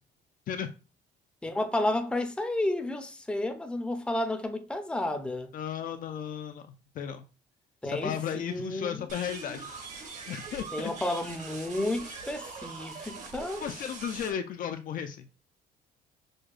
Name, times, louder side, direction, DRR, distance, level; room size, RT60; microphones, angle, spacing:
voice 1, 1.4-5.5 7.8-9.0 10.7-13.6, left 1 dB, 5° left, 0.6 m, -31 dB
voice 2, 5.5-6.6 6.9-7.2 7.8-9.7 10.3-10.9 13.6-15.3, left 8 dB, 55° left, 0.5 m, -34 dB
sound 1, 9.1-14.3, right 4 dB, 45° right, 1.2 m, -42 dB
6.3 x 2.2 x 2.4 m
cardioid pair, 110°, 17 cm